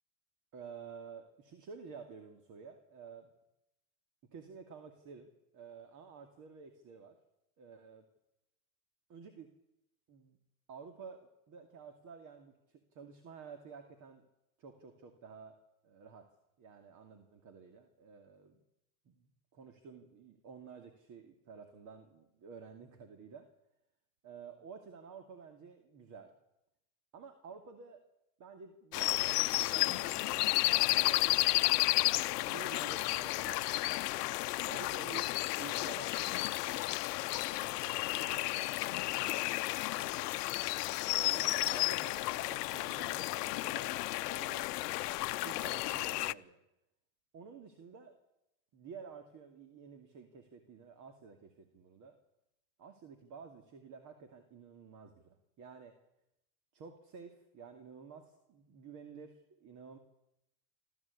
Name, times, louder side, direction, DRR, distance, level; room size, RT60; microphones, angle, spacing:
voice 1, 0.5-3.3 4.3-7.2 7.6-8.0 9.1-9.5 10.1-10.4 10.7-14.2 14.6-15.6 15.8-16.3 16.6-18.6 19.0-19.2 19.6-23.5 24.2-26.3 27.1-28.0 28.4-34.0 34.6-37.2 37.5-40.5 41.0-44.6 45.4-46.6 47.3-48.2 48.7-52.2 52.8-55.9 56.7-60.0, right 6 dB, 40° right, 6 dB, 2.6 m, -52 dB
sound 1, 28.9-46.3, left 19 dB, 75° left, 0.8 m, -32 dB
25.5 x 14.5 x 8.5 m, 0.89 s
supercardioid pair, 120°, 48 cm